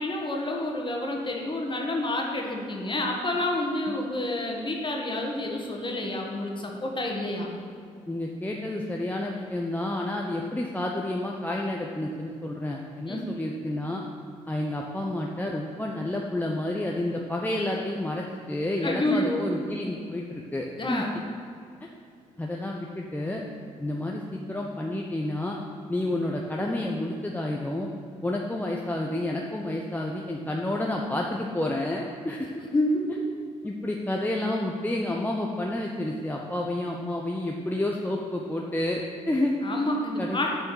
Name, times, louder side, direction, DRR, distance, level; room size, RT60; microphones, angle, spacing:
voice 1, 0.0-7.5 13.1-13.2 18.8-19.5 20.8-21.1 32.7-33.2 39.6-40.6, left 1 dB, 30° left, 0 dB, 1.8 m, -28 dB
voice 2, 8.1-14.0 14.5-21.1 22.4-23.4 23.8-25.6 25.9-27.9 28.2-32.5 33.6-39.5 40.2-40.4, left 1 dB, 10° left, -1 dB, 0.8 m, -30 dB
6.9 x 5.7 x 6.4 m, 2.4 s
hypercardioid pair, 45°, 16 cm